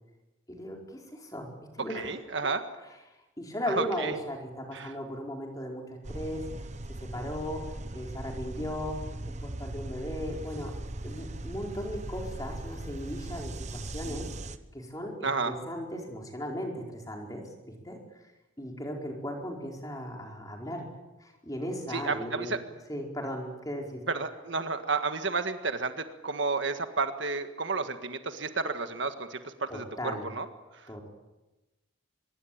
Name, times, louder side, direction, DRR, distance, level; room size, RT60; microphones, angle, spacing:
voice 1, 0.5-2.1 3.4-6.4 7.0-7.6 7.9-9.0 9.3-10.7 11.0-14.3 14.7-18.0 18.6-20.9 21.2-22.6 22.9-24.0 29.7-30.3 30.9-31.1, equal, 15° left, 1 dB, 4.8 m, -37 dB
voice 2, 1.8-2.6 3.7-4.1 4.7-4.9 15.2-15.5 21.9-22.6 24.1-25.9 26.2-30.5 30.7-30.9, right 4 dB, 65° right, 8 dB, 1.7 m, -31 dB
sound 1, 6.0-14.6, right 1 dB, 35° right, 1.1 m, -39 dB
25.0 x 22.0 x 8.7 m, 1.1 s
head